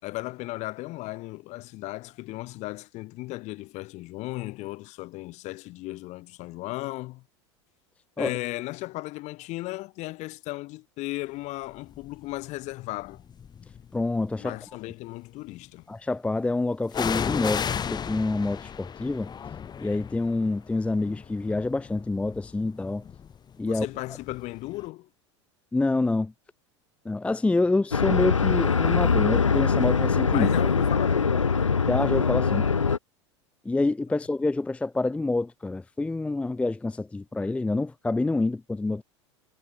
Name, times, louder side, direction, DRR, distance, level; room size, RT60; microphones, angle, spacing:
voice 1, 0.0-7.2 8.2-13.2 14.4-15.9 23.6-25.1 30.3-31.8, left 20 dB, 50° left, 4.1 m, -36 dB
sound 1, 11.9-12.3 13.1-14.0 16.9-24.5 24.8-24.9, left 7 dB, 25° left, 2.7 m, -35 dB
voice 2, 13.9-14.6 15.9-17.6 17.9-19.3 19.8-23.1 23.6-23.9 25.7-26.3 27.0-30.5 31.9-32.7 33.6-39.0, left 2 dB, 10° left, 0.6 m, -27 dB
sound 2, 27.9-33.0, left 5 dB, 90° left, 0.9 m, -22 dB
figure-of-eight pair, 80°, 16 cm